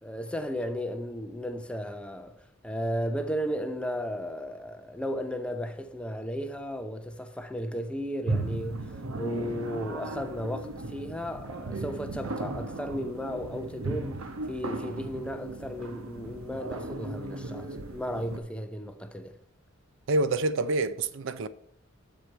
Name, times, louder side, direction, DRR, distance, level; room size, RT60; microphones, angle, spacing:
voice 1, 0.0-2.3 2.6-19.4, equal, 5° left, 0.6 m, -35 dB
sound 1, 8.3-18.4, right 2 dB, 85° right, 1.0 m, -36 dB
voice 2, 20.1-21.5, right 2 dB, 65° right, 0.5 m, -27 dB
8.1 x 6.7 x 4.4 m
head